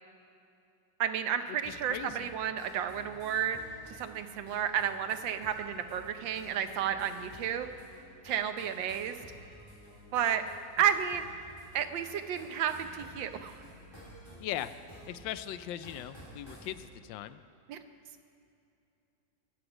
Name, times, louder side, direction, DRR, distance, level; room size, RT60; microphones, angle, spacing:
voice 1, 1.0-3.6 3.9-7.7 8.2-9.2 10.1-10.4 10.8-11.3 11.7-13.6 17.7-17.8, right 9 dB, 90° right, 9 dB, 1.5 m, -31 dB
sound 1, 1.6-16.8, equal, 15° left, 4.1 m, -52 dB
voice 2, 1.7-2.3 14.4-14.7 15.1-17.4, left 12 dB, 90° left, 13 dB, 1.3 m, -39 dB
22.0 x 8.0 x 5.0 m, 2.7 s
omnidirectional pair, 2.0 m